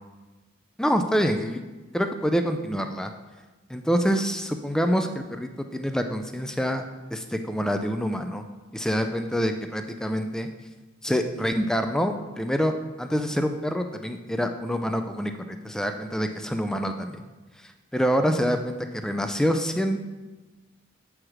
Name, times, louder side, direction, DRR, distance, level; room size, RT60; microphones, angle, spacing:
voice 1, 0.8-1.6 1.9-3.1 3.7-6.8 7.1-8.4 8.7-10.5 11.0-17.2 17.6-20.0, equal, 5° left, 6 dB, 0.3 m, -26 dB
7.5 x 4.7 x 4.9 m, 1.2 s
head